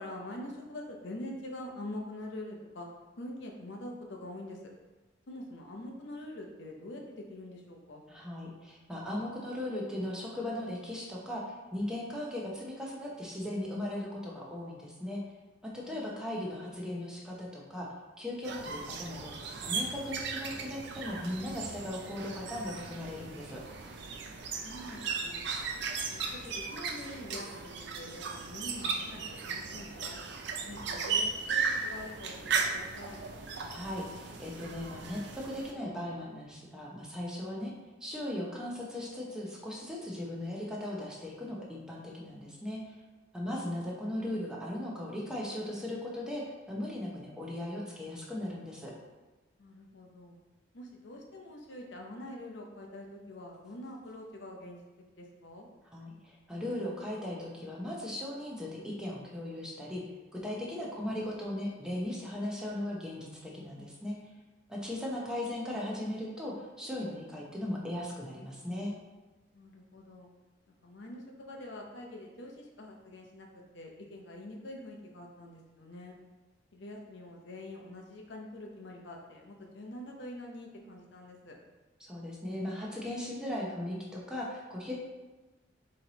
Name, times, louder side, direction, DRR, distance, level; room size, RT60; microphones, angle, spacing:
voice 1, 0.0-2.9 3.2-4.6 5.3-8.0 15.8-16.2 24.6-25.4 25.9-30.2 30.6-32.4 32.7-33.2 49.6-50.4 50.7-54.8 55.2-55.7 69.5-70.3 70.8-73.5 73.7-76.2 76.7-81.5, left 1 dB, 65° left, 0 dB, 0.7 m, -45 dB
voice 2, 8.1-11.4 11.7-15.2 15.6-17.9 18.2-19.3 19.6-23.6 33.7-37.7 38.0-42.9 43.3-48.9 55.9-60.0 60.4-64.2 64.7-68.9 82.0-84.9, left 1 dB, 5° right, -4 dB, 0.7 m, -38 dB
sound 1, 18.4-35.7, right 5 dB, 60° right, 0.5 m, -36 dB
4.4 x 3.1 x 3.9 m, 1.2 s
head